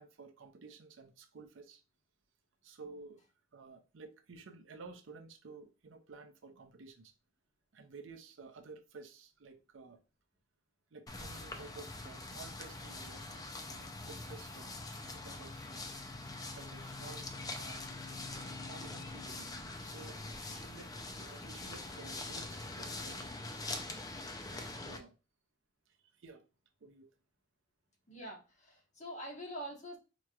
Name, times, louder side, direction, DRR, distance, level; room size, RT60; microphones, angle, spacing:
voice 1, 0.0-1.8 2.6-3.2 3.5-7.1 7.7-10.0 10.9-15.9 16.5-18.0 18.4-19.5 19.8-20.2 20.5-23.6 24.5-25.2 26.2-26.4 26.8-27.1, right 4 dB, 80° right, 0.6 m, -53 dB
sound 1, 11.1-25.0, left 2 dB, 20° left, 0.4 m, -44 dB
voice 2, 28.1-30.0, equal, 40° left, 1.3 m, -45 dB
4.4 x 3.0 x 2.4 m
head